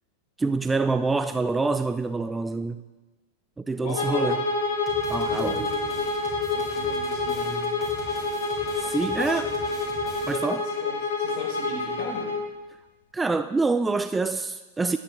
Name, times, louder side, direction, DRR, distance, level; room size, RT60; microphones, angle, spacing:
voice 1, 0.4-2.8 3.6-4.4 5.1-5.6 8.8-9.5 10.3-10.7 13.1-15.0, right 3 dB, 10° right, 0.3 m, -26 dB
voice 2, 3.8-4.4 5.1-6.0 6.5-7.7 9.1-9.4 10.6-12.3, left 3 dB, 50° left, 4.0 m, -37 dB
Bowed string instrument, 3.9-12.5, left 3 dB, 65° left, 1.2 m, -28 dB
sound 1, 4.9-10.6, left 1 dB, 30° left, 4.0 m, -43 dB
19.5 x 9.8 x 2.4 m
figure-of-eight pair, 90°, 0 cm